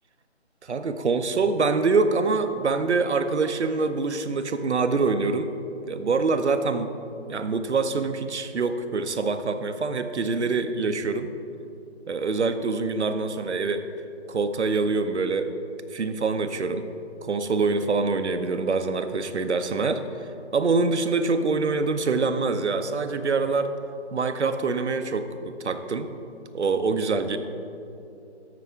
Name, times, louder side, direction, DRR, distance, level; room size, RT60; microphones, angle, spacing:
voice 1, 0.6-5.5 5.9-6.9 7.3-11.3 12.1-13.8 14.3-15.5 15.9-16.9 17.2-20.0 20.5-23.7 24.1-26.1 26.5-27.4, right 4 dB, 70° right, 9 dB, 0.7 m, -25 dB
13.5 x 4.9 x 3.4 m, 2.7 s
figure-of-eight pair, 175°, 35 cm